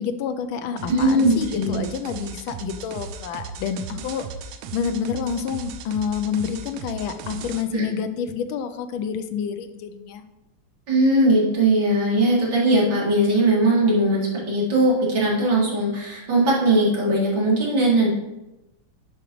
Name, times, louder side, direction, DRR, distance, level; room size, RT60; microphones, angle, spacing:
voice 1, 0.0-4.3 4.7-10.2, left 7 dB, 80° left, 9 dB, 1.4 m, -28 dB
sound 1, 0.8-7.6, right 6 dB, 85° right, 1.4 m, -37 dB
voice 2, 0.9-1.7 7.7-7.8 10.9-18.1, right 1 dB, 70° right, -6 dB, 2.9 m, -19 dB
10.0 x 5.0 x 3.0 m, 0.96 s
omnidirectional pair, 2.2 m